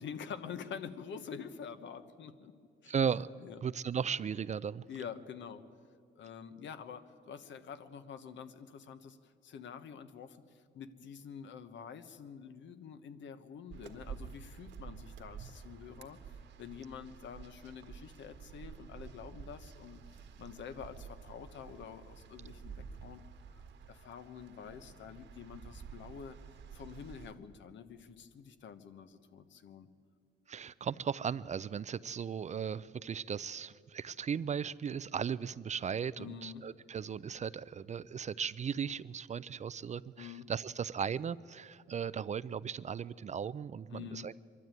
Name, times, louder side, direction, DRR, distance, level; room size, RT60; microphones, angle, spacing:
voice 1, 0.0-2.5 2.8-2.9 3.4-3.6 4.9-5.6 6.2-23.2 23.9-26.4 26.7-29.9 36.2-36.6 40.2-40.5 43.9-44.3, left 7 dB, 70° left, 10 dB, 1.2 m, -47 dB
voice 2, 2.9-3.3 3.6-4.8 30.5-44.3, right 7 dB, 35° right, 17 dB, 0.4 m, -36 dB
sound 1, 13.7-27.3, right 6 dB, 65° right, 1.7 m, -50 dB
23.5 x 12.5 x 9.1 m, 2.3 s
cardioid pair, 90°, 20 cm